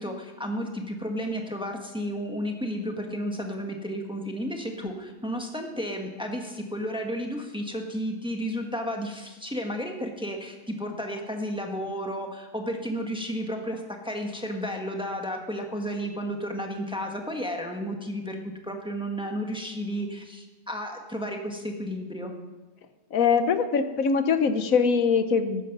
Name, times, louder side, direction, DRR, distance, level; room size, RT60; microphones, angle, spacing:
voice 1, 0.0-22.3, equal, 5° right, 2 dB, 1.4 m, -32 dB
voice 2, 23.1-25.6, left 5 dB, 80° left, 10 dB, 1.3 m, -22 dB
14.0 x 10.5 x 6.0 m, 1.2 s
omnidirectional pair, 1.4 m